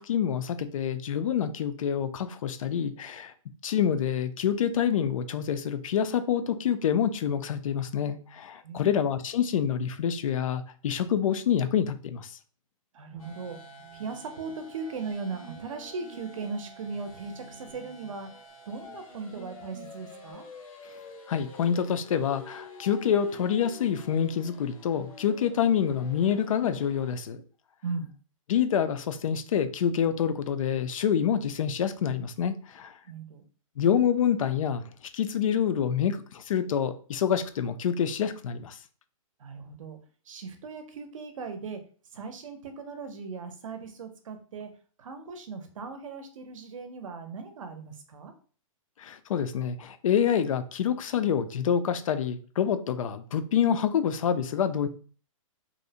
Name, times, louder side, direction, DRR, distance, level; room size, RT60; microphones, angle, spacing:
voice 1, 0.0-3.3 3.6-12.4 21.3-27.4 28.5-32.9 33.8-34.8 35.1-38.8 49.0-54.9, left 8 dB, 75° left, 11 dB, 0.4 m, -27 dB
voice 2, 8.6-9.1 12.9-13.6 13.9-18.3 18.7-20.4 27.8-28.1 33.0-33.4 39.4-40.0 40.3-41.8 42.1-44.7 45.0-48.3, right 4 dB, 70° right, 7 dB, 0.6 m, -38 dB
sound 1, 13.1-20.3, right 3 dB, 10° right, 0.5 m, -52 dB
sound 2, 13.2-27.2, left 2 dB, 90° left, 0.8 m, -48 dB
2.6 x 2.0 x 2.7 m, 0.41 s
hypercardioid pair, 180°, 17 cm